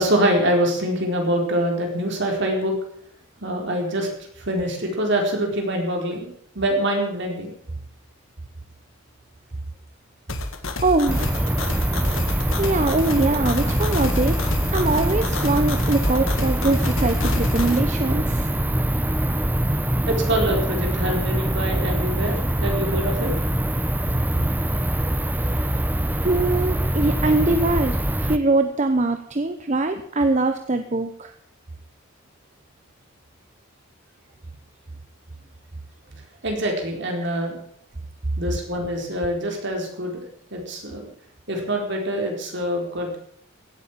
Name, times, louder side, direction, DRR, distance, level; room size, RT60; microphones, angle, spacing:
voice 1, 0.0-2.7 3.4-4.1 4.5-6.3 6.5-7.5 12.9-13.0 13.6-13.8 20.1-23.3 36.4-37.6 38.4-40.2 40.5-41.1 41.5-43.2, right 1 dB, 55° right, 1 dB, 4.3 m, -24 dB
sound 1, 10.3-17.8, left 2 dB, 70° left, 1.8 m, -29 dB
voice 2, 10.8-11.5 12.2-14.4 14.7-18.5 26.2-31.3, right 2 dB, 35° right, 8 dB, 0.8 m, -23 dB
sound 2, 11.1-28.4, right 1 dB, 10° right, 0.7 m, -23 dB
16.5 x 8.4 x 7.4 m, 0.67 s
head